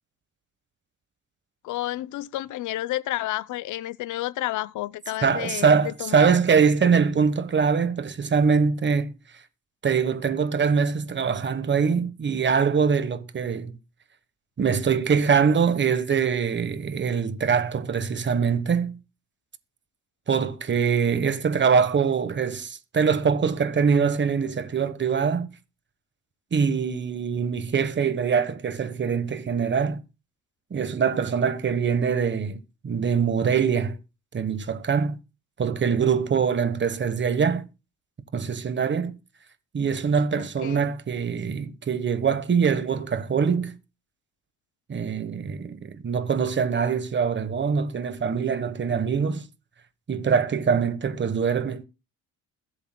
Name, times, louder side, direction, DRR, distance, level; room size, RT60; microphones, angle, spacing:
voice 1, 1.6-6.3 40.4-40.9, left 15 dB, 80° left, 0.5 m, -31 dB
voice 2, 5.2-9.1 9.8-13.8 14.6-19.0 20.3-25.5 26.5-30.0 30.7-34.0 34.3-35.2 35.6-37.6 38.3-39.1 39.7-43.7 44.9-49.4 50.1-51.8, right 6 dB, 40° right, 1.2 m, -23 dB
21.5 x 7.9 x 2.2 m
cardioid pair, 90°, 30 cm